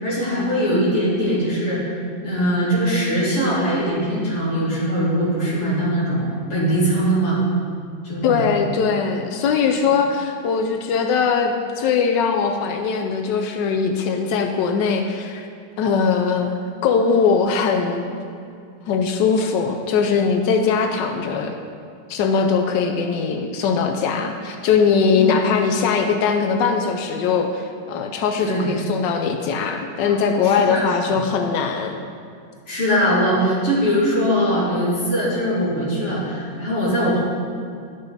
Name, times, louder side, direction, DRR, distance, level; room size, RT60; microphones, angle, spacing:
voice 1, 0.0-1.9 2.2-6.2 6.5-7.4 8.0-8.4 25.1-25.2 28.4-28.7 30.4-30.8 32.7-37.2, equal, 40° left, -9 dB, 2.6 m, -21 dB
voice 2, 8.2-15.5 15.8-18.1 18.9-21.5 22.1-32.0, left 5 dB, 90° left, 4 dB, 1.3 m, -20 dB
12.5 x 5.1 x 4.0 m, 2.4 s
omnidirectional pair, 1.9 m